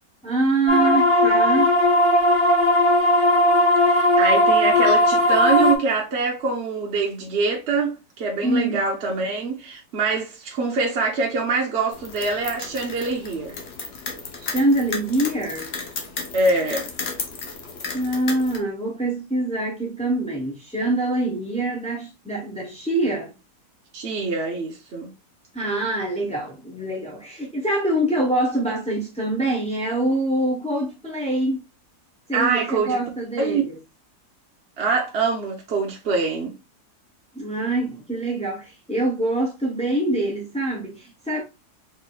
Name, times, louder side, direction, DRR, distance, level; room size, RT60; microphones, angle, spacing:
voice 1, 0.2-1.8 8.4-8.8 14.4-15.7 17.9-23.3 25.5-31.6 32.3-33.8 37.3-41.4, right 1 dB, 10° left, 0.4 m, -24 dB
sound 1, 0.7-5.7, left 1 dB, 25° left, 0.9 m, -17 dB
voice 2, 3.8-13.6 16.3-16.9 23.9-25.1 32.3-33.0 33.4-33.6 34.8-36.6, right 4 dB, 50° right, 0.9 m, -24 dB
sound 2, 11.9-18.6, left 4 dB, 50° left, 0.9 m, -34 dB
4.4 x 3.6 x 2.3 m
omnidirectional pair, 1.7 m